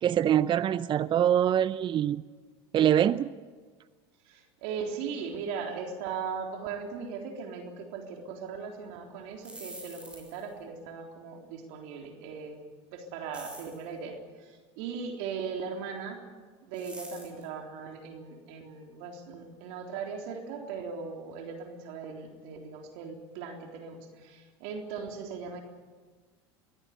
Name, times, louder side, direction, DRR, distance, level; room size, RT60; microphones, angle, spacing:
voice 1, 0.0-2.2 2.7-3.3, right 10 dB, 35° right, 16 dB, 0.6 m, -24 dB
voice 2, 4.3-12.6 12.9-16.2 16.7-25.6, right 5 dB, 65° right, 2 dB, 3.6 m, -38 dB
sound 1, 9.3-10.5 13.3-13.8 16.7-17.4, right 1 dB, 5° right, 6.4 m, -46 dB
23.0 x 16.0 x 8.3 m, 1.5 s
hypercardioid pair, 90°, 14 cm